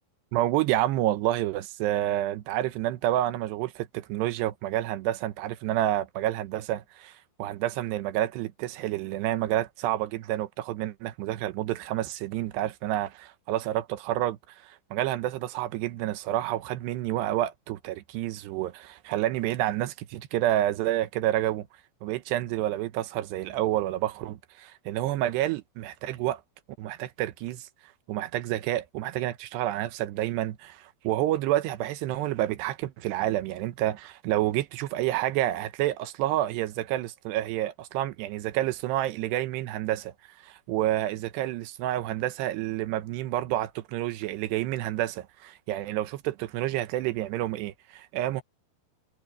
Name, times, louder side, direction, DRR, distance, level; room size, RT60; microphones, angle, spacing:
voice 1, 0.3-14.4 14.6-21.7 22.0-26.4 26.8-27.7 28.1-40.1 40.4-48.4, right 14 dB, 80° right, 2.9 m, -29 dB
omnidirectional pair, 5.0 m